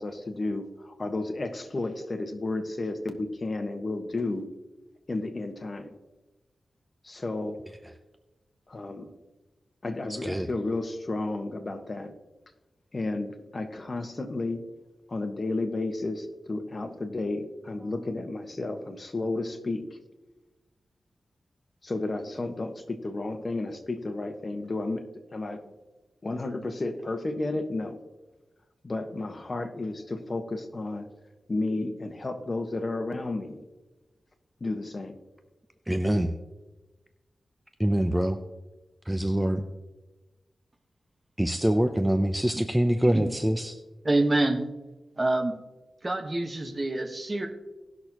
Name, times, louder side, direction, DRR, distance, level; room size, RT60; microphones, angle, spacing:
voice 1, 0.0-4.5 5.1-5.9 7.0-7.6 8.7-9.1 9.8-12.1 12.9-14.6 15.1-19.8 21.8-25.0 25.3-25.7 26.2-28.0 28.8-31.1 31.5-33.6 34.6-35.2, left 2 dB, 40° left, 5 dB, 1.3 m, -32 dB
voice 2, 10.1-10.5 35.9-36.3 37.8-38.4 39.1-39.7 41.4-43.7, equal, 10° right, 7 dB, 0.6 m, -25 dB
voice 3, 44.0-44.6 45.2-45.6 46.0-47.5, right 2 dB, 30° right, 3 dB, 1.3 m, -26 dB
18.5 x 6.2 x 2.9 m, 1.1 s
wide cardioid pair, 75°, 0 cm